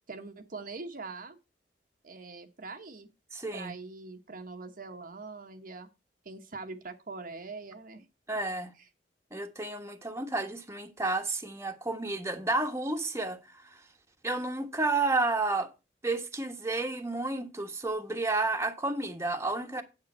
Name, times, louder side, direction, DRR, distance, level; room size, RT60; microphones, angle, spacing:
voice 1, 0.1-1.4 2.0-3.1 3.5-5.9 6.2-8.1, right 3 dB, 50° right, 1.1 m, -43 dB
voice 2, 3.3-3.7 8.3-8.7 9.3-13.7 14.2-15.7 16.0-19.8, right 2 dB, 15° right, 1.3 m, -31 dB
8.8 x 8.5 x 4.3 m
head